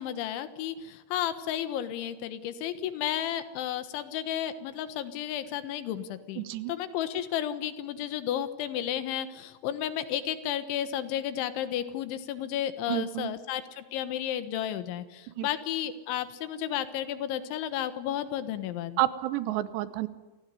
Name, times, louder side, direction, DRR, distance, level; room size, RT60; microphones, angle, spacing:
voice 1, 0.0-19.0, left 11 dB, 90° left, 11 dB, 3.8 m, -33 dB
voice 2, 6.4-6.7 12.9-13.3 15.4-15.5 19.0-20.1, right 14 dB, 75° right, 14 dB, 3.0 m, -29 dB
28.0 x 17.0 x 9.8 m, 1.2 s
omnidirectional pair, 5.2 m